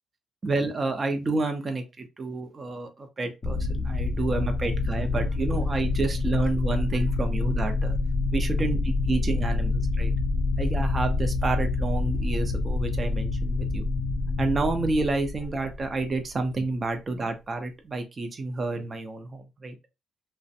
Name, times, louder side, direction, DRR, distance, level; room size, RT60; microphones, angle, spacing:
voice 1, 0.4-8.0 8.3-10.1 10.6-13.9 14.4-19.8, right 3 dB, 35° right, 0.5 m, -29 dB
sound 1, 3.4-16.4, left 3 dB, 35° left, 0.4 m, -27 dB
2.4 x 2.1 x 2.6 m
cardioid pair, 90°, 0 cm